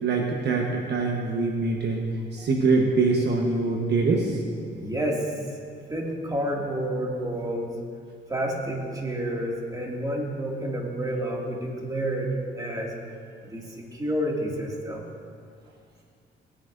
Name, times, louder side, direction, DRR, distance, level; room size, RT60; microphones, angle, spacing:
voice 1, 0.0-2.0 2.3-4.4, right 3 dB, 60° right, 1 dB, 1.2 m, -24 dB
voice 2, 4.7-5.3 5.9-7.7 8.3-12.9 13.5-15.1, right 1 dB, 20° right, -2 dB, 2.2 m, -29 dB
18.5 x 9.9 x 2.6 m, 2.2 s
cardioid pair, 90°, 20 cm